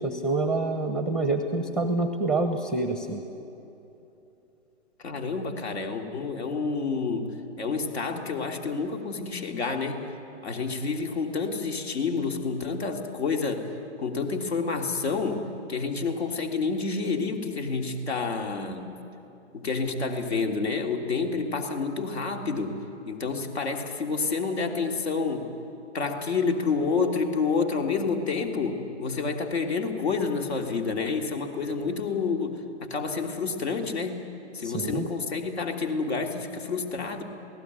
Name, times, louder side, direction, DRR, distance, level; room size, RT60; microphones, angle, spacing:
voice 1, 0.0-3.2 34.6-35.1, right 2 dB, ahead, 7 dB, 0.8 m, -27 dB
voice 2, 5.0-10.1 10.4-13.7 14.0-18.8 19.5-22.8 23.0-25.5 25.9-34.2 34.5-37.2, left 4 dB, 60° left, 4 dB, 3.2 m, -29 dB
27.5 x 18.0 x 9.5 m, 2.9 s
hypercardioid pair, 140°, 35 cm